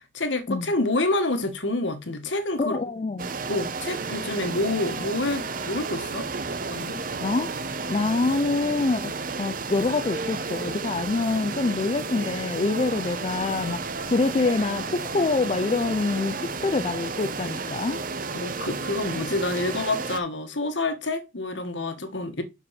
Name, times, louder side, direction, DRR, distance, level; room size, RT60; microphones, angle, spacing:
voice 1, 0.1-2.8 3.1-6.3 6.7-7.0 8.0-8.1 18.3-22.4, left 2 dB, 70° left, 1.4 m, -28 dB
voice 2, 2.6-3.3 7.2-18.0, left 3 dB, 30° left, 0.4 m, -26 dB
sound 1, 3.2-20.2, right 4 dB, 45° right, 0.8 m, -32 dB
6.1 x 5.1 x 5.7 m
head